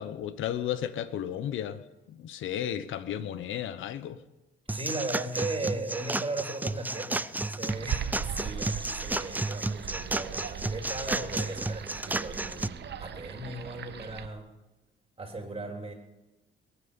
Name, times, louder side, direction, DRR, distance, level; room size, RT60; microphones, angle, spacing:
voice 1, 0.0-1.8 2.1-4.2, left 10 dB, 80° left, 13 dB, 1.0 m, -33 dB
sound 1, 4.7-12.7, right 2 dB, 10° right, 0.5 m, -32 dB
voice 2, 4.7-14.5 15.2-15.9, right 2 dB, 30° right, 2 dB, 3.6 m, -37 dB
sound 2, 7.7-14.3, right 8 dB, 60° right, 1.1 m, -39 dB
22.0 x 9.1 x 7.0 m, 1.0 s
cardioid pair, 90°, 20 cm